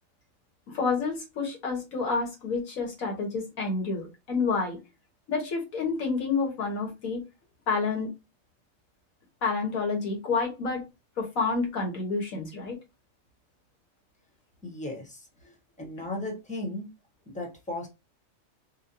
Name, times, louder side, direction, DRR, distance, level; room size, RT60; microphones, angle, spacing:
voice 1, 0.7-4.8 5.3-7.2 7.7-8.1 9.4-10.8 11.2-12.8, left 4 dB, 80° left, 1 dB, 1.8 m, -29 dB
voice 2, 14.6-15.3 15.8-16.9 17.3-17.9, left 1 dB, 5° left, 1 dB, 1.1 m, -35 dB
4.8 x 2.3 x 2.8 m, 0.25 s
omnidirectional pair, 1.4 m